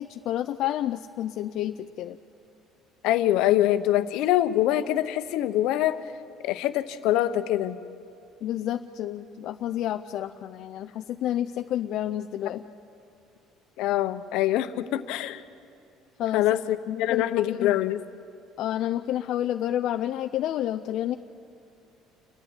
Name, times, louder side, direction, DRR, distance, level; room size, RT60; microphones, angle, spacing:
voice 1, 0.0-2.2 8.4-12.6 16.2-16.4 16.9-17.8 18.6-21.1, left 12 dB, 55° left, 7 dB, 0.6 m, -30 dB
voice 2, 3.0-6.0 6.4-7.8 13.8-15.4 16.3-18.0, left 13 dB, 75° left, 11 dB, 1.0 m, -24 dB
29.5 x 11.0 x 9.7 m, 2.5 s
cardioid pair, 145°, 0 cm